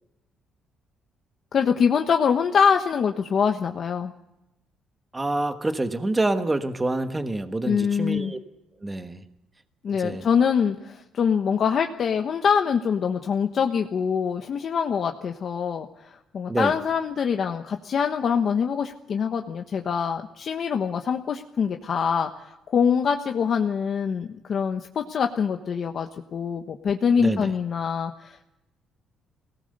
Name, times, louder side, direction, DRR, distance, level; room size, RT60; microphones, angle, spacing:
voice 1, 1.5-4.1 7.7-8.3 9.8-28.5, left 6 dB, 45° left, 5 dB, 1.2 m, -24 dB
voice 2, 5.1-8.4 8.8-9.2 10.0-10.2 16.5-16.7 27.2-27.5, right 2 dB, 15° right, 8 dB, 1.3 m, -27 dB
24.0 x 18.5 x 6.7 m, 0.89 s
cardioid pair, 155°, 0 cm